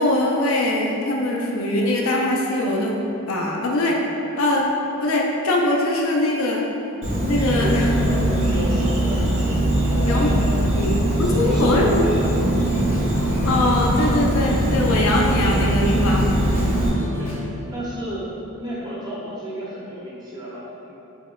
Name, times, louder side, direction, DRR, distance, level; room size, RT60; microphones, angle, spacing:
voice 1, 0.0-3.0 3.3-4.0 4.4-4.7 5.0-6.6 7.2-7.9 10.0-10.3 10.8-10.9 11.2-12.0 13.4-16.3, left 2 dB, 75° left, -1 dB, 0.4 m, -22 dB
Insect, 7.0-16.9, right 1 dB, 65° right, 0.8 m, -21 dB
voice 2, 7.6-9.3 9.8-10.7 11.2-12.2 16.8-20.9, equal, 20° right, -7 dB, 0.5 m, -33 dB
sound 1, 12.3-17.4, left 1 dB, 60° left, 1.0 m, -31 dB
5.3 x 2.2 x 2.2 m, 3.0 s
head